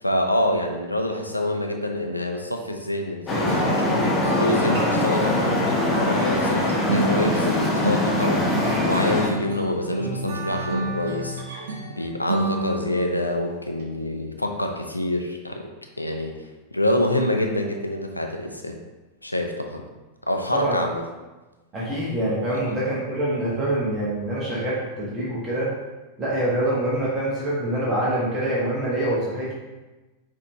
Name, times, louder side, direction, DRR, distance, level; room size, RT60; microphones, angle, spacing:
voice 1, 0.0-3.6 4.0-5.5 5.8-15.7 16.0-16.3 16.7-18.8 19.2-19.8 20.3-21.0 22.5-22.6, left 1 dB, 85° left, 3 dB, 0.5 m, -26 dB
Traffic noise roadway noise, 3.3-9.3, left 1 dB, 15° left, 0.8 m, -22 dB
sound 1, 3.5-13.1, right 2 dB, 60° right, 0.8 m, -30 dB
voice 2, 21.7-25.7 26.2-29.5, right 1 dB, 20° right, -7 dB, 1.2 m, -25 dB
5.6 x 2.8 x 3.4 m, 1.1 s
figure-of-eight pair, 90°, 0 cm